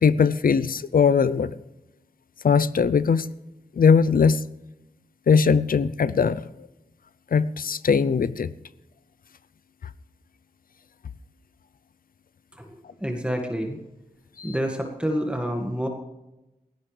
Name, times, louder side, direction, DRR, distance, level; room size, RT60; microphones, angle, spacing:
voice 1, 0.0-1.6 2.4-3.3 3.8-4.4 5.3-6.7 7.3-8.5 14.4-14.5, left 6 dB, 70° left, 17 dB, 0.6 m, -20 dB
voice 2, 13.0-13.8 14.4-15.9, equal, 5° right, 2 dB, 1.9 m, -28 dB
18.0 x 15.5 x 3.3 m, 0.96 s
cardioid pair, 50°, 15 cm